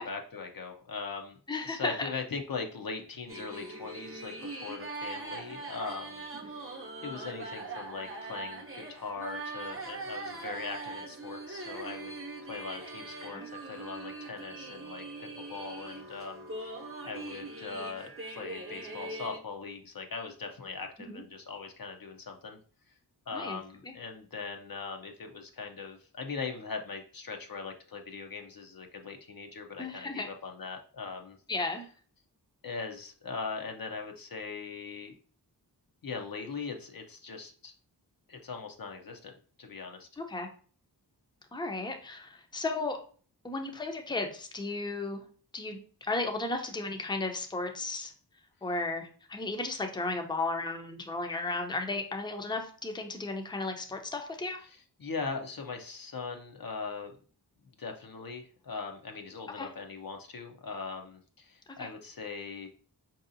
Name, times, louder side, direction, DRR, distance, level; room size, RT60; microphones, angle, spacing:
voice 1, 0.0-1.4 1.6-12.1 12.4-22.6 23.3-31.4 32.6-35.1 36.0-37.7 38.3-39.3 39.6-40.2 54.7-57.1 57.8-62.7, left 4 dB, 55° left, 3 dB, 0.6 m, -40 dB
voice 2, 1.5-2.1 13.3-13.5 21.0-21.2 23.3-23.6 29.8-30.3 31.5-31.9 40.2-40.5 41.5-43.0 43.4-45.2 45.5-48.1 48.6-54.7 59.6-59.7 61.8-61.9, left 3 dB, 10° left, 4 dB, 0.6 m, -34 dB
sound 1, 3.3-19.4, right 3 dB, 35° right, 0.8 m, -41 dB
4.6 x 2.7 x 2.6 m, 0.42 s
wide cardioid pair, 45°, 41 cm